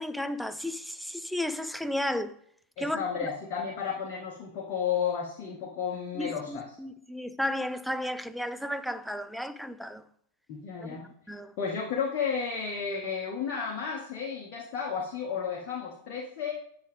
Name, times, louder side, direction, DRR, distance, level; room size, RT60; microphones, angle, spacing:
voice 1, 0.0-2.3 2.8-3.0 6.2-10.0 10.8-11.0 11.3-11.5, left 1 dB, ahead, 0.4 m, -33 dB
voice 2, 2.8-6.8 10.5-11.1 11.6-16.5, left 6 dB, 40° left, 0.9 m, -32 dB
8.1 x 4.8 x 3.4 m
figure-of-eight pair, 90°, 0 cm